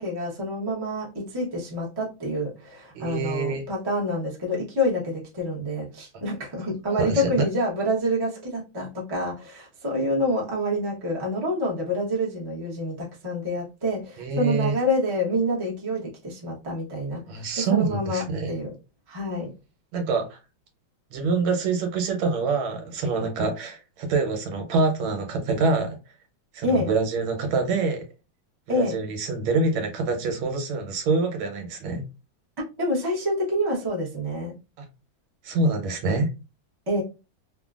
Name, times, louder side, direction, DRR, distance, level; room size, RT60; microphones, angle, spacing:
voice 1, 0.0-18.7 19.1-19.5 26.6-26.9 28.7-29.0 32.8-34.6 36.9-37.0, equal, 25° right, 0.5 m, -27 dB
voice 2, 2.9-3.6 6.9-7.5 14.2-14.7 17.3-18.5 19.9-20.4 21.1-26.0 26.5-28.0 28.7-32.0 34.8-34.9 35.4-36.3, right 3 dB, 90° right, 1.6 m, -25 dB
3.6 x 2.2 x 2.4 m
omnidirectional pair, 2.1 m